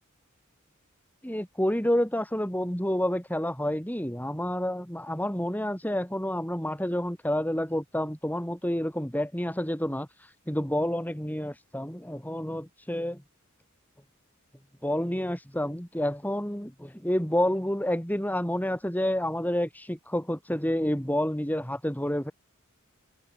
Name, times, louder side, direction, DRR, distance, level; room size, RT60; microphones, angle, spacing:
voice 1, 1.2-10.1 10.5-13.2 14.8-22.3, left 1 dB, 10° left, 6.0 m, -29 dB
head